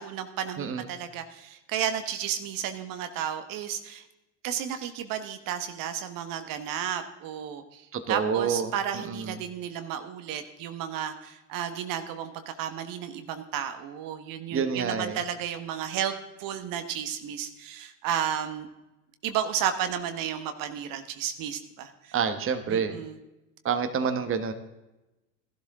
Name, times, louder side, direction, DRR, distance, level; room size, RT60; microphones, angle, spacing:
voice 1, 0.0-4.0 4.4-16.1 16.4-18.7 19.2-22.1 22.7-23.2, right 9 dB, 55° right, 8 dB, 1.4 m, -33 dB
voice 2, 0.6-0.9 7.9-9.4 14.5-15.2 22.1-22.9 23.6-24.5, right 6 dB, 35° right, 8 dB, 1.3 m, -28 dB
15.0 x 11.5 x 3.7 m, 0.99 s
hypercardioid pair, 85°, 39 cm